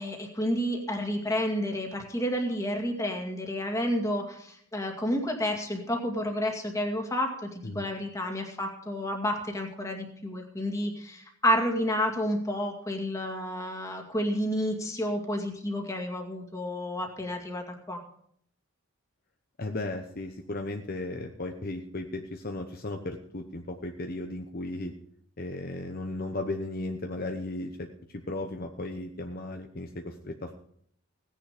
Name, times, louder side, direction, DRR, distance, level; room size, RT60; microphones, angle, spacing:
voice 1, 0.0-18.0, equal, 15° left, 2 dB, 2.2 m, -30 dB
voice 2, 19.6-24.9 25.4-30.5, left 2 dB, 45° left, 4 dB, 1.0 m, -35 dB
17.0 x 10.0 x 5.1 m, 0.67 s
head